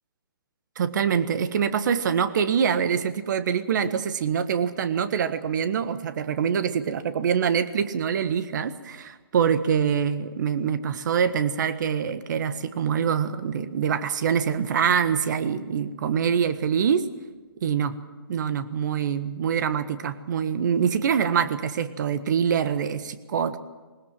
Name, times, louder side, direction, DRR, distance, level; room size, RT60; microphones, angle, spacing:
voice 1, 0.8-17.1 17.6-17.9 18.3-23.6, right 7 dB, 50° right, 12 dB, 1.5 m, -25 dB
20.5 x 20.5 x 7.5 m, 1.3 s
hypercardioid pair, 150°, 13 cm